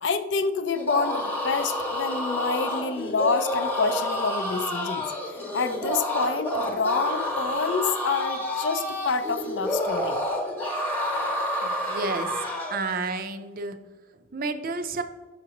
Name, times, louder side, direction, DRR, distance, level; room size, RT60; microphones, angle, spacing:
voice 1, 0.0-5.0 5.5-10.2, left 4 dB, 60° left, 10 dB, 0.5 m, -27 dB
sound 1, 0.7-12.8, left 1 dB, 10° left, 1.0 m, -29 dB
voice 2, 11.6-12.3 12.7-13.8 14.3-15.0, right 3 dB, 45° right, 8 dB, 0.5 m, -30 dB
6.1 x 5.8 x 2.9 m, 1.3 s
head